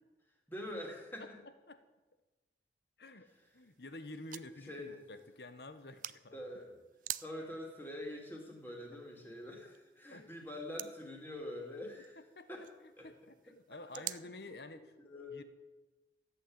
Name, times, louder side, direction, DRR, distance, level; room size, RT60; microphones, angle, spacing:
voice 1, 0.5-1.4 4.7-5.0 6.3-6.8 7.2-12.2 12.5-12.7 13.0-13.1 13.5-13.6 14.0-14.1 15.0-15.4, left 1 dB, 10° left, 0 dB, 2.9 m, -45 dB
voice 2, 3.0-3.3 3.5-6.4 10.1-10.3 12.2-12.5 12.8-14.9 15.3-15.4, left 2 dB, 70° left, 11 dB, 1.1 m, -50 dB
sound 1, 3.3-14.2, right 14 dB, 45° right, 0.4 m, -50 dB
14.5 x 8.5 x 8.8 m, 1.2 s
head